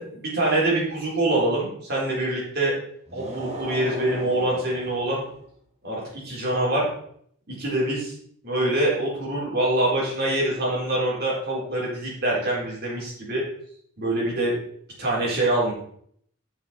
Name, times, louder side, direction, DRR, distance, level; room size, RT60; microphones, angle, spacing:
voice 1, 0.1-2.7 3.1-5.2 5.8-6.9 7.5-8.1 8.4-13.4 14.0-14.5 15.0-15.7, right 1 dB, 50° right, -5 dB, 4.4 m, -25 dB
sound 1, 3.1-5.4, right 1 dB, 30° right, 1.8 m, -37 dB
9.0 x 6.6 x 4.6 m, 0.64 s
head